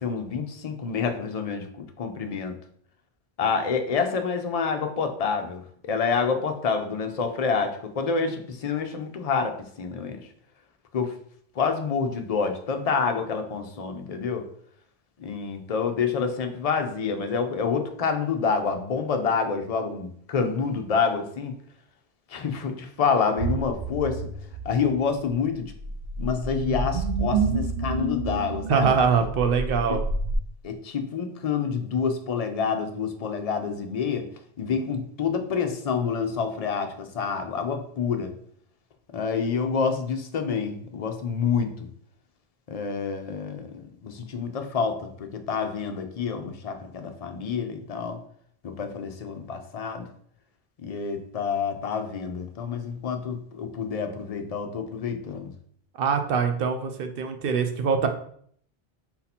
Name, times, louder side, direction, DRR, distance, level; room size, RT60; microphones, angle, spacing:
voice 1, 0.0-2.6 3.4-10.3 10.9-11.2 11.6-14.4 15.2-21.5 22.3-24.2 24.6-25.7 26.2-28.9 29.9-30.0 30.6-34.3 34.6-38.3 39.1-41.7 42.7-48.2 48.6-50.1 50.8-55.5, left 5 dB, 45° left, 6 dB, 0.5 m, -28 dB
sound 1, 23.4-30.4, right 3 dB, 90° right, 0.9 m, -29 dB
voice 2, 28.7-30.0 56.0-58.1, right 6 dB, 65° right, 6 dB, 0.8 m, -23 dB
4.1 x 2.8 x 4.1 m, 0.62 s
omnidirectional pair, 1.1 m